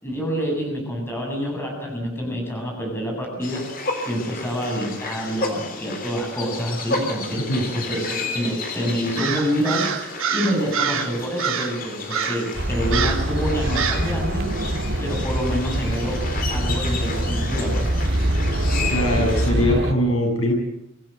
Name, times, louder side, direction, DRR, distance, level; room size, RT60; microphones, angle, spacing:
voice 1, 0.0-3.7 4.1-14.5 15.0-16.2 16.5-17.9, equal, 10° left, 1 dB, 7.6 m, -27 dB
sound 1, 3.4-19.5, left 3 dB, 45° left, 3.6 m, -32 dB
Crow, 9.2-11.1 11.4-11.8 12.1-12.5 12.9-13.3 13.8-14.1, right 7 dB, 80° right, 2.7 m, -26 dB
sound 2, 12.5-19.9, right 1 dB, 55° right, 2.2 m, -24 dB
voice 2, 18.8-20.5, equal, 85° left, 2 dB, 7.4 m, -21 dB
25.5 x 16.0 x 9.0 m, 0.84 s
head